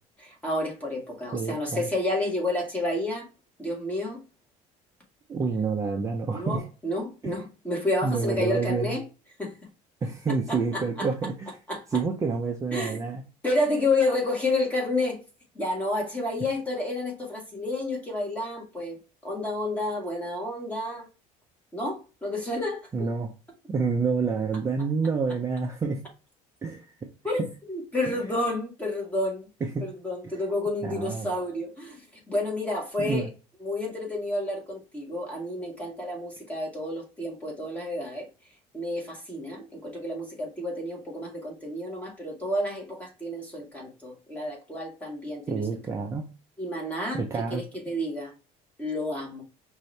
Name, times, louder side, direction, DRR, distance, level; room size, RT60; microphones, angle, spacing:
voice 1, 0.2-3.3 3.6-4.2 6.3-9.0 9.4-9.5 10.5-11.1 11.7-12.0 12.7-13.0 13.4-15.2 15.6-21.1 21.7-23.1 27.2-27.4 27.7-29.5 29.8-33.3 33.6-38.3 38.7-45.6 46.6-47.2 47.5-48.3 48.8-49.4, left 1 dB, 10° left, 1.8 m, -30 dB
voice 2, 1.3-1.8 5.3-6.6 7.2-7.4 8.0-9.0 10.0-11.5 11.9-13.2 22.9-23.3 23.7-26.0 26.6-26.9 27.4-27.5 28.0-28.1 29.6-29.8 30.2-30.3 30.8-31.3 33.0-33.3 45.5-46.3 47.1-47.6, right 4 dB, 20° right, 0.6 m, -28 dB
5.3 x 2.7 x 3.2 m
cardioid pair, 140°, 14 cm